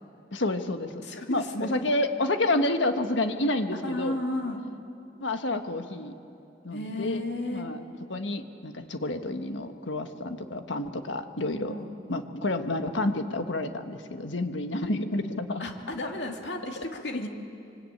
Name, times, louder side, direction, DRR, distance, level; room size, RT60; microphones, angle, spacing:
voice 1, 0.3-4.2 5.2-6.1 6.6-7.2 7.5-7.8 8.1-11.7 12.1-15.6 16.8-16.9, left 2 dB, 80° left, 7 dB, 1.5 m, -29 dB
voice 2, 1.0-1.8 3.8-4.6 6.7-7.7 11.4-11.9 15.6-17.3, left 1 dB, 65° left, 2 dB, 2.5 m, -33 dB
26.0 x 24.5 x 8.8 m, 2.6 s
head